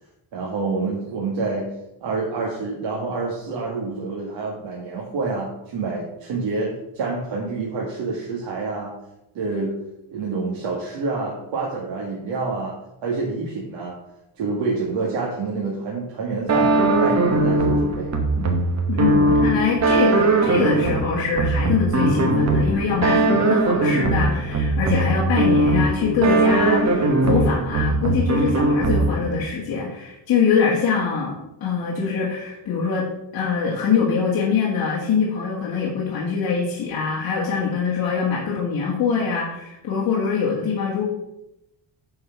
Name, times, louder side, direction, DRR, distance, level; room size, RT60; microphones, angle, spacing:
voice 1, 0.3-1.7 2.0-8.9 9.3-9.7 10.1-12.8 13.0-14.0 14.4-18.6, right 3 dB, 70° right, -4 dB, 2.1 m, -27 dB
sound 1, 16.5-29.4, right 2 dB, 35° right, 1.4 m, -20 dB
voice 2, 18.9-31.3 31.6-33.1 33.3-41.0, left 5 dB, 50° left, -5 dB, 2.2 m, -23 dB
9.5 x 4.8 x 5.8 m, 0.87 s
cardioid pair, 175°, 46 cm